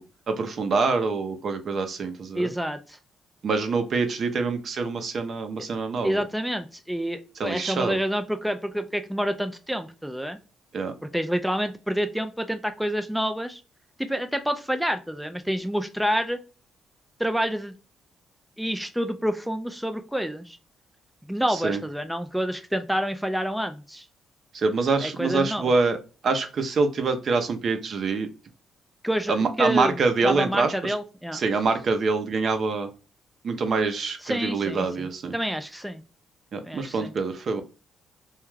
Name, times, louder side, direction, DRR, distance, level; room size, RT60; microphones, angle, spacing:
voice 1, 0.3-2.5 3.4-6.2 7.4-8.0 10.7-10.9 21.5-21.8 24.5-26.0 26.2-28.3 29.3-30.9 31.3-32.9 33.4-35.3 36.5-37.6, right 4 dB, 55° right, 7 dB, 0.5 m, -25 dB
voice 2, 2.3-3.0 6.0-10.4 11.1-13.6 14.0-16.4 17.2-17.7 18.6-20.6 21.3-24.1 25.0-25.7 29.0-30.0 30.2-31.4 34.2-36.0 36.6-37.1, equal, ahead, 7 dB, 0.3 m, -28 dB
2.3 x 2.2 x 3.0 m, 0.34 s
cardioid pair, 90°, 0 cm